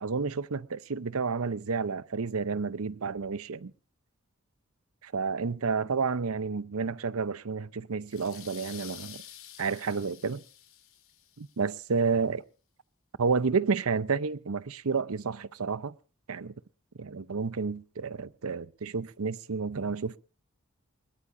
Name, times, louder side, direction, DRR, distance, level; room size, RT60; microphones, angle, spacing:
voice 1, 0.0-3.7 5.0-9.2 9.6-10.4 11.4-12.4 13.2-15.9 16.3-16.5 17.0-20.2, right 5 dB, 90° right, 0.7 m, -30 dB
sound 1, 8.1-11.5, left 11 dB, 70° left, 4.3 m, -48 dB
22.0 x 19.0 x 2.6 m
head